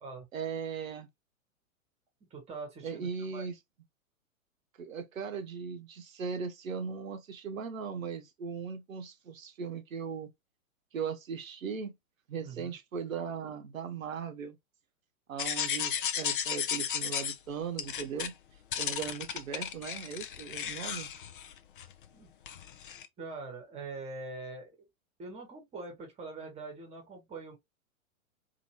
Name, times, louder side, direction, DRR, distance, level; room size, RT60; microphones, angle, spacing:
voice 1, 0.3-1.1 2.8-3.6 4.8-10.3 10.9-12.0 12.3-14.6 15.3-18.3 18.8-21.1, right 6 dB, 70° right, 0.8 m, -38 dB
voice 2, 2.3-3.5 12.4-12.8 22.1-22.3 23.2-24.7 25.2-27.6, right 3 dB, 15° right, 1.1 m, -43 dB
sound 1, 15.4-17.4 17.8-18.3 18.7-22.1 22.5-23.1, left 9 dB, 40° left, 0.4 m, -34 dB
2.8 x 2.6 x 2.8 m
figure-of-eight pair, 110°, 42 cm